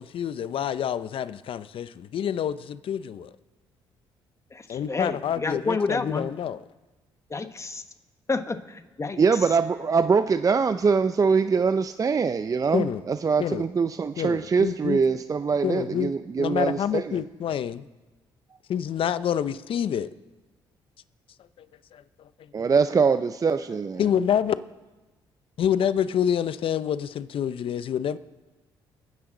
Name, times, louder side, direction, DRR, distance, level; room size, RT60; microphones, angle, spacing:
voice 1, 0.0-3.3 4.7-6.6 12.7-13.0 13.4-13.7 14.2-15.0 15.6-16.1 16.4-17.9 18.7-20.1 21.6-21.7 21.9-22.0 22.6-22.7 24.0-24.5 25.6-28.2, left 9 dB, 65° left, 0.7 m, -27 dB
voice 2, 4.5-6.3 7.3-7.8 8.3-9.2, left 3 dB, 30° left, 1.4 m, -29 dB
voice 3, 9.2-17.2 22.5-24.1, right 5 dB, 35° right, 0.6 m, -23 dB
29.0 x 9.9 x 3.9 m
supercardioid pair, 60°, 10 cm